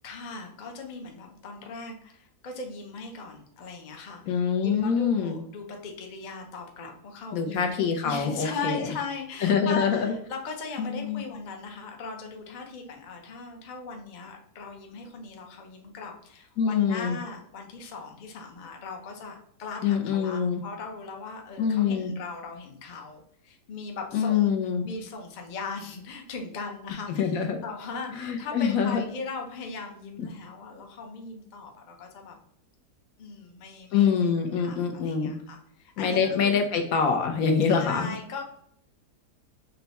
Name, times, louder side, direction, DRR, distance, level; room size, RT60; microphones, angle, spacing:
voice 1, 0.0-7.7 8.0-24.5 24.8-32.3 33.2-36.7 37.7-38.4, left 4 dB, 50° left, 2 dB, 0.5 m, -39 dB
voice 2, 4.3-5.4 7.3-8.9 9.4-10.1 10.8-11.2 16.6-17.2 19.8-20.6 21.6-22.1 24.1-24.9 27.2-27.6 28.2-29.0 33.9-35.3 36.0-38.1, left 6 dB, 65° left, 4 dB, 1.0 m, -25 dB
5.5 x 2.2 x 4.0 m, 0.68 s
omnidirectional pair, 1.7 m